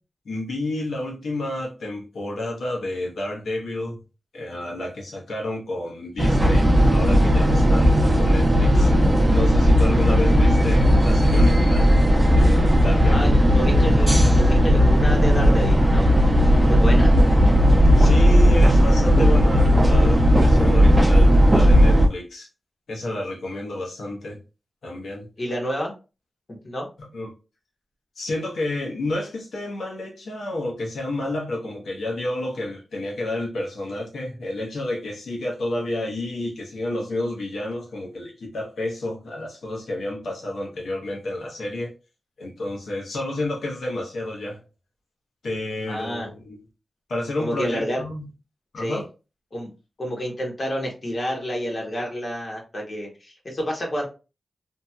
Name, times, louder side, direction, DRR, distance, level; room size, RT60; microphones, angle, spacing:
voice 1, 0.2-4.0 4.3-8.9 9.3-11.9 12.3-13.3 18.0-22.5 22.9-24.4 24.8-25.3 27.0-27.3 28.2-41.9 42.4-44.6 45.4-46.6 47.1-48.2 48.7-49.0, left 1 dB, 85° left, -2 dB, 1.0 m, -30 dB
sound 1, 6.2-22.1, equal, 20° right, 0.6 m, -16 dB
voice 2, 13.1-16.1 16.7-17.1 25.4-25.9 26.6-26.9 45.9-46.3 47.4-48.0 48.8-49.0 49.5-49.7 50.0-54.0, equal, 50° left, -1 dB, 1.1 m, -29 dB
2.8 x 2.7 x 2.3 m, 0.31 s
cardioid pair, 50°, 0 cm